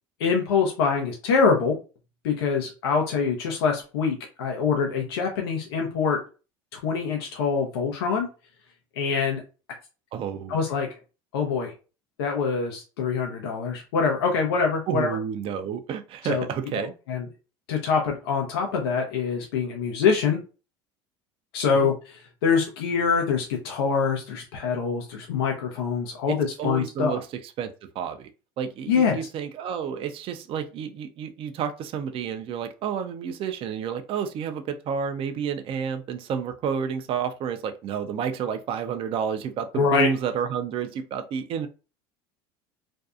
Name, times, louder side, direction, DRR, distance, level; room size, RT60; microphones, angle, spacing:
voice 1, 0.2-1.8 2.2-6.2 6.7-8.3 9.0-9.4 10.5-10.9 11.3-11.7 12.2-15.2 16.2-16.5 16.7-17.3 17.7-20.4 21.5-27.2 28.9-29.2 39.7-40.1, left 5 dB, 85° left, 0.6 m, -24 dB
voice 2, 10.1-10.5 14.9-16.9 21.7-21.9 26.3-27.3 27.6-28.3 28.6-41.7, right 7 dB, 45° right, 0.4 m, -30 dB
2.6 x 2.2 x 2.4 m
supercardioid pair, 90°, 13 cm